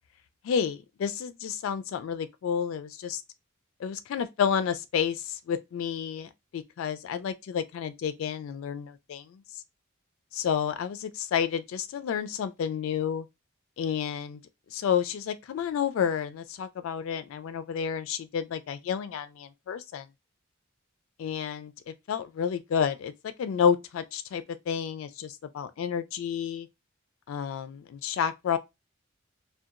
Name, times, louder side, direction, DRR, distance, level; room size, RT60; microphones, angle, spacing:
voice 1, 0.4-3.2 3.8-9.4 10.3-13.3 13.8-14.4 14.7-20.1 21.2-21.7 22.1-23.1 23.4-26.7 27.3-28.6, left 7 dB, 75° left, 0.3 m, -30 dB
2.7 x 2.2 x 2.4 m
head